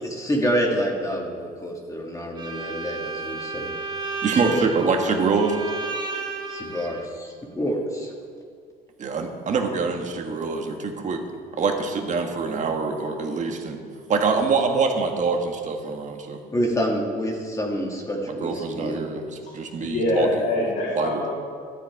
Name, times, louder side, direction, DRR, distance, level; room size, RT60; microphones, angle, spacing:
voice 1, 0.0-3.8 4.4-4.6 6.5-8.1 16.5-19.0 19.8-19.9, equal, 20° left, 0 dB, 1.7 m, -27 dB
Bowed string instrument, 2.3-7.1, right 4 dB, 25° right, 1.5 m, -32 dB
voice 2, 4.2-5.6 9.0-11.2 11.5-13.8 14.1-16.4 18.3-19.2 19.5-20.3 21.0-21.2, right 4 dB, 45° right, 4 dB, 1.5 m, -25 dB
voice 3, 19.9-21.3, left 1 dB, 75° left, -7 dB, 2.9 m, -24 dB
12.0 x 9.8 x 4.7 m, 2.2 s
cardioid pair, 110°, 17 cm